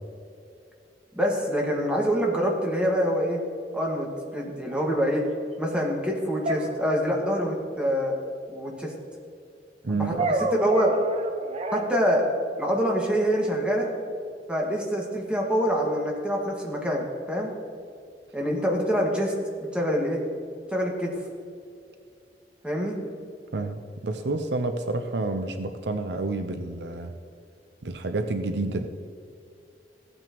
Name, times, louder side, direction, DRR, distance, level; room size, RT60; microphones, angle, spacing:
voice 1, 1.1-3.4 3.7-5.2 5.6-8.1 8.5-8.9 9.9-10.2 10.6-11.0 11.7-12.2 12.6-13.9 14.5-17.5 18.3-19.3 19.7-20.2 20.7-21.2 22.6-23.0, equal, 5° right, -2 dB, 1.8 m, -25 dB
sound 1, 4.7-4.8 6.4-7.4 10.2-11.9, right 2 dB, 35° right, 0.8 m, -28 dB
voice 2, 9.8-10.2 23.5-27.1 27.8-28.9, right 2 dB, 70° right, 7 dB, 0.7 m, -29 dB
15.5 x 8.9 x 3.1 m, 2.4 s
head